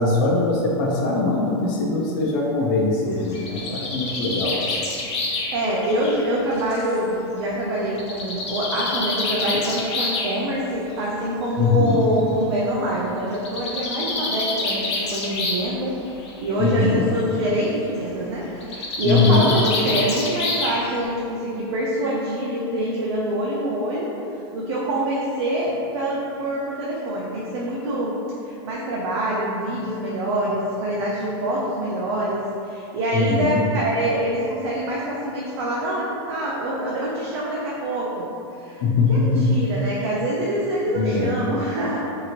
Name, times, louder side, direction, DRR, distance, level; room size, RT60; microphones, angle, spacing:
voice 1, 0.0-4.8 11.6-12.0 16.6-17.0 19.0-19.6 33.1-33.6 38.8-39.6 40.9-41.3, left 3 dB, 45° left, -2 dB, 0.4 m, -21 dB
Bird, 3.1-6.9 8.0-10.3 11.4-11.5 11.9-12.0 12.2-12.3 13.3-15.7 16.0-16.5 18.6-21.0, left 3 dB, 90° left, 0.7 m, -27 dB
voice 2, 5.5-24.1 24.5-28.2 28.5-38.3 38.6-38.8 39.1-42.0, right 1 dB, 70° right, -5 dB, 0.5 m, -25 dB
2.8 x 2.5 x 2.8 m, 2.7 s
supercardioid pair, 165°, 14 cm